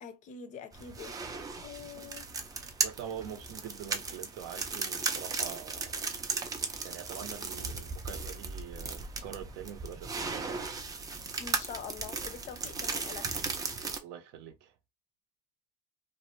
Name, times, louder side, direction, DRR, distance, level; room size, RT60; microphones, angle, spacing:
voice 1, 0.0-1.2 1.6-2.3 11.4-13.3, left 7 dB, 40° left, 0.5 m, -45 dB
sound 1, 0.7-14.0, right 4 dB, 20° right, 0.4 m, -36 dB
voice 2, 2.8-6.0 6.8-10.7 14.0-14.7, right 9 dB, 65° right, 0.6 m, -44 dB
2.4 x 2.1 x 2.9 m
cardioid pair, 130°, 19 cm